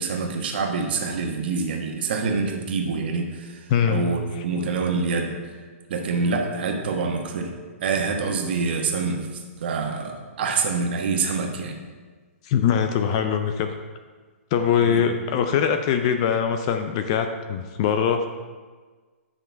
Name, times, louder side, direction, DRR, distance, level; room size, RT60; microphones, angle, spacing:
voice 1, 0.0-5.3 5.9-7.5 7.8-11.8 14.8-15.0, right 4 dB, 45° right, 2 dB, 1.3 m, -26 dB
voice 2, 3.7-4.1 12.4-13.7 14.5-18.3, left 8 dB, 25° left, 7 dB, 0.4 m, -22 dB
10.5 x 6.0 x 4.5 m, 1.4 s
hypercardioid pair, 170°, 8 cm